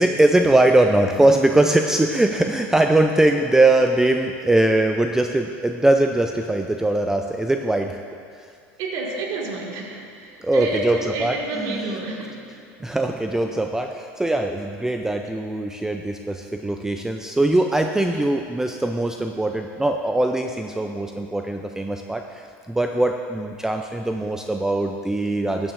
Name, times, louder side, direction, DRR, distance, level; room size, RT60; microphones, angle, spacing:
voice 1, 0.0-8.0 8.4-8.5 10.4-11.9 12.8-25.7, right 2 dB, 5° right, 5 dB, 0.4 m, -21 dB
voice 2, 8.8-12.4, right 3 dB, 65° right, -1 dB, 1.9 m, -30 dB
14.5 x 9.2 x 2.6 m, 2.4 s
supercardioid pair, 95°, 7 cm